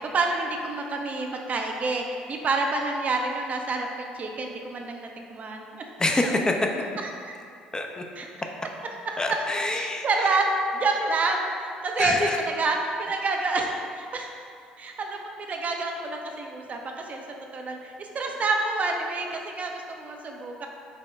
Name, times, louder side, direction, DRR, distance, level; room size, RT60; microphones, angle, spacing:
voice 1, 0.0-5.9 8.2-8.3 9.8-10.5 10.7-14.3 14.8-17.2 17.5-20.7, right 3 dB, 40° right, 2 dB, 0.5 m, -28 dB
voice 2, 6.0-6.7 7.7-8.0 9.2-10.3 12.0-12.4, left 2 dB, 20° left, 2 dB, 0.5 m, -26 dB
5.4 x 2.1 x 3.2 m, 2.5 s
hypercardioid pair, 55°, 4 cm